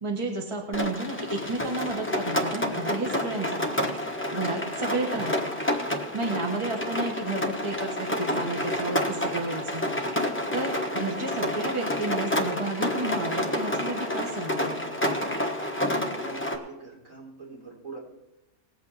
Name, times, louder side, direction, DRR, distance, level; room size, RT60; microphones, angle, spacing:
voice 1, 0.0-3.7 4.3-5.5 6.1-9.8 10.5-14.8, right 2 dB, 20° right, 1 dB, 1.5 m, -32 dB
Rain, 0.7-16.6, left 1 dB, 10° left, 1.1 m, -29 dB
voice 2, 16.0-18.0, right 3 dB, 55° right, -2 dB, 4.1 m, -44 dB
19.5 x 8.4 x 4.2 m, 1.0 s
omnidirectional pair, 1.6 m